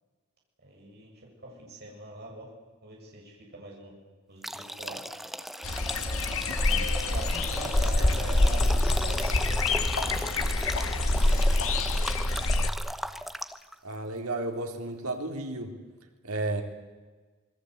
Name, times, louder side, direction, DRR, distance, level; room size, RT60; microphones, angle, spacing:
voice 1, 0.6-1.1 1.4-2.5 2.8-3.9 4.3-5.0 6.6-10.7, right 1 dB, 45° right, -2 dB, 7.7 m, -43 dB
sound 1, 4.4-13.7, equal, ahead, 0.9 m, -37 dB
sound 2, 5.6-12.7, left 2 dB, 65° left, 1.7 m, -26 dB
voice 2, 13.8-15.7 16.2-16.6, right 2 dB, 85° right, 3 dB, 4.0 m, -32 dB
27.0 x 21.5 x 8.3 m, 1.3 s
head